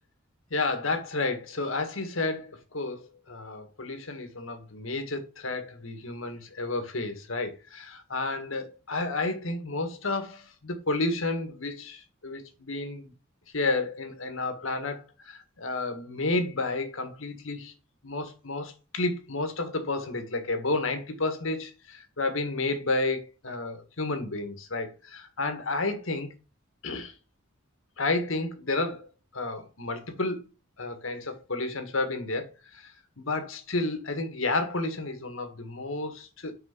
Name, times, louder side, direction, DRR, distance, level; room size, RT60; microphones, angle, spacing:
voice 1, 0.5-13.1 13.5-17.7 18.0-26.3 26.8-27.1 28.0-30.4 30.8-32.9 33.2-36.5, left 2 dB, 75° left, 1.7 m, -31 dB
6.3 x 4.4 x 6.0 m
head